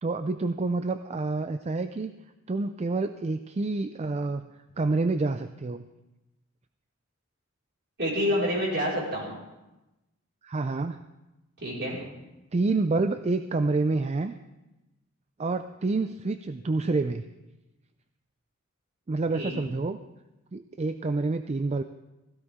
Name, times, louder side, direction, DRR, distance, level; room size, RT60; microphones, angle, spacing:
voice 1, 0.0-2.2 2.5-4.5 4.8-5.9 10.4-11.0 12.5-14.3 15.4-17.2 19.1-20.0 20.5-21.8, right 3 dB, 30° right, 10 dB, 0.4 m, -28 dB
voice 2, 8.0-9.3 11.6-12.0 19.3-19.7, equal, 55° right, -5 dB, 5.0 m, -28 dB
16.0 x 16.0 x 3.6 m, 1.0 s
head